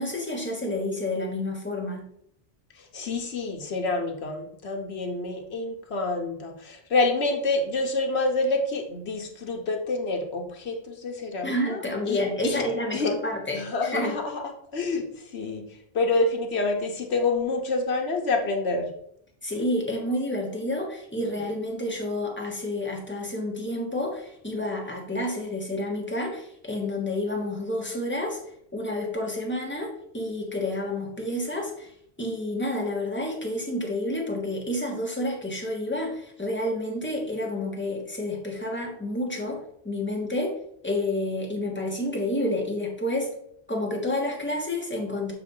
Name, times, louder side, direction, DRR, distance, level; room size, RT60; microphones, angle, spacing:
voice 1, 0.0-2.1 11.4-14.2 19.4-28.4 28.7-31.9 32.2-40.5 40.8-43.3 43.7-45.3, left 1 dB, 10° left, -1 dB, 1.3 m, -29 dB
voice 2, 2.8-12.6 12.9-13.1 13.5-14.4 14.7-15.0 15.3-15.7 15.9-18.9, left 3 dB, 85° left, 2 dB, 1.3 m, -27 dB
6.9 x 3.1 x 5.4 m, 0.70 s
omnidirectional pair, 1.1 m